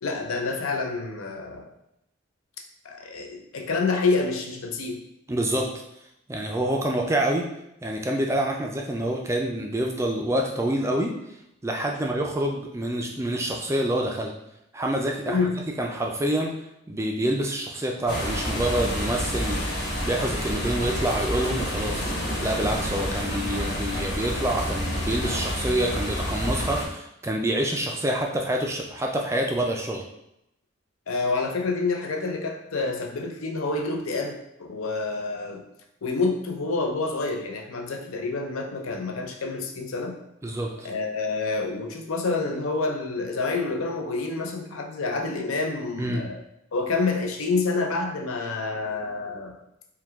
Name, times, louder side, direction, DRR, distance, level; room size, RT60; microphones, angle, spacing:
voice 1, 0.0-1.7 2.8-5.0 15.3-15.5 31.1-35.6 36.0-40.2 40.8-46.4 46.7-49.6, left 3 dB, 85° left, 3 dB, 0.6 m, -28 dB
voice 2, 5.3-5.7 6.3-7.5 7.8-11.1 11.6-14.3 14.7-15.5 15.8-16.5 16.9-22.0 22.4-30.0 40.4-40.9 46.0-46.3, right 1 dB, 15° right, 1 dB, 0.3 m, -27 dB
sound 1, 18.1-26.9, equal, 50° left, 1.1 m, -29 dB
4.7 x 2.2 x 3.5 m, 0.82 s
head